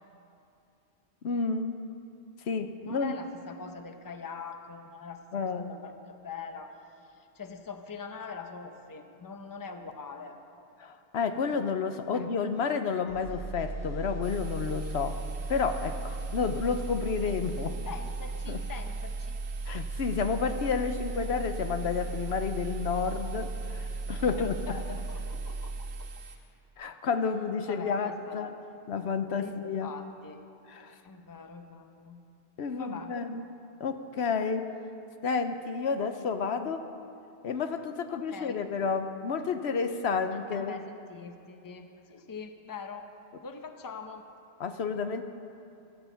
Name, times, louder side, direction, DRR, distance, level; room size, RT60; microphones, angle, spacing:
voice 1, 1.2-1.8 2.5-3.1 5.3-5.8 10.8-15.2 15.5-17.8 18.5-18.6 19.7-24.5 26.8-28.5 28.9-29.9 30.7-31.0 32.6-33.4 33.8-34.7 35.2-36.9 37.4-40.8 44.6-45.2, left 5 dB, 70° left, 8 dB, 1.0 m, -30 dB
voice 2, 2.8-10.4 11.3-11.7 12.1-12.3 17.8-19.4 24.2-25.9 27.7-28.6 29.3-29.6 29.8-30.4 31.0-32.2 32.7-33.1 38.1-38.6 40.3-43.1 43.4-44.2, left 5 dB, 20° left, 6 dB, 0.7 m, -43 dB
sound 1, 13.1-26.2 26.5-26.7, right 3 dB, 85° left, 4.4 m, -36 dB
sound 2, 14.2-26.4, right 7 dB, 70° right, 1.7 m, -50 dB
15.5 x 13.0 x 5.6 m, 2.7 s
omnidirectional pair, 1.1 m